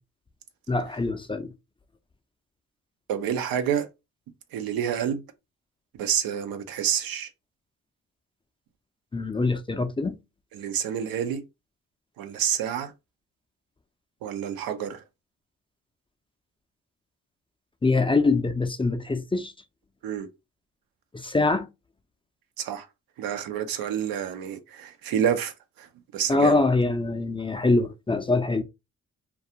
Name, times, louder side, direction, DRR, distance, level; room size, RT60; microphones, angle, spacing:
voice 1, 0.7-1.5 9.1-10.2 17.8-19.5 21.1-21.7 26.3-28.6, left 3 dB, 15° left, 0.4 m, -24 dB
voice 2, 3.1-3.9 4.5-5.2 5.9-7.3 10.5-11.4 12.2-12.9 14.2-15.0 20.0-20.3 22.6-22.9 23.2-26.6, right 9 dB, 85° right, 0.5 m, -28 dB
2.3 x 2.3 x 2.7 m
supercardioid pair, 50°, 35 cm